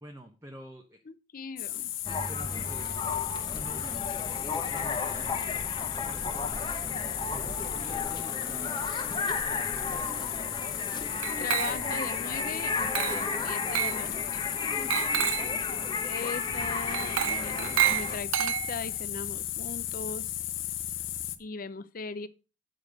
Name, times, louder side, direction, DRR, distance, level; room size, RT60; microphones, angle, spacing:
voice 1, 0.0-1.0 2.3-2.9 3.5-4.1 4.6-5.5 5.9-6.8 7.3-10.3 15.4-15.7, equal, 15° right, 0.9 m, -47 dB
voice 2, 1.1-1.9 11.4-14.4 16.0-20.3 21.4-22.3, left 4 dB, 45° left, 0.6 m, -39 dB
sound 1, 1.6-21.4, left 13 dB, 85° left, 0.8 m, -35 dB
sound 2, 2.0-18.2, left 3 dB, 25° left, 1.0 m, -34 dB
Glass, 11.2-12.1 12.9-13.3 13.7-14.0 14.9-15.6 16.9-19.0, right 11 dB, 90° right, 0.4 m, -29 dB
8.1 x 5.2 x 5.0 m
head